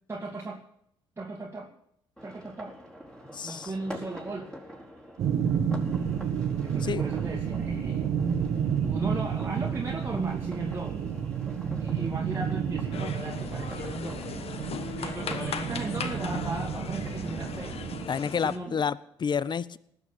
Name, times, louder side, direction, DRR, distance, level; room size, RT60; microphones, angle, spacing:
voice 1, 0.1-0.6 1.2-1.7 2.2-2.8 3.3-4.5 6.6-8.1 8.8-11.1 11.8-14.3 15.0-17.8 18.2-18.8, right 2 dB, 20° right, -1 dB, 2.3 m, -37 dB
sound 1, 2.2-18.4, equal, 5° left, 4.6 m, -46 dB
voice 2, 3.3-3.7 6.8-7.0 18.1-19.8, left 6 dB, 35° left, 20 dB, 0.7 m, -29 dB
sound 2, 5.2-18.0, right 7 dB, 55° right, 1.5 m, -31 dB
sound 3, 12.9-18.6, left 7 dB, 50° left, 1.2 m, -38 dB
19.0 x 6.6 x 8.8 m, 0.73 s
hypercardioid pair, 50°, 13 cm